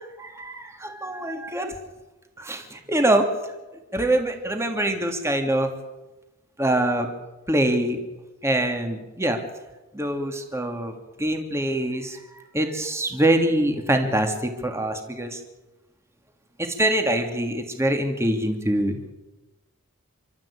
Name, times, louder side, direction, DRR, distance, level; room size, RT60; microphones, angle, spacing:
voice 1, 0.2-1.7 2.4-3.3 3.9-5.7 6.6-7.1 7.5-8.0 8.4-9.4 9.9-10.9 11.2-12.2 12.5-15.4 16.6-19.1, right 1 dB, 15° right, 4 dB, 2.9 m, -24 dB
30.0 x 13.5 x 8.8 m, 1.1 s
head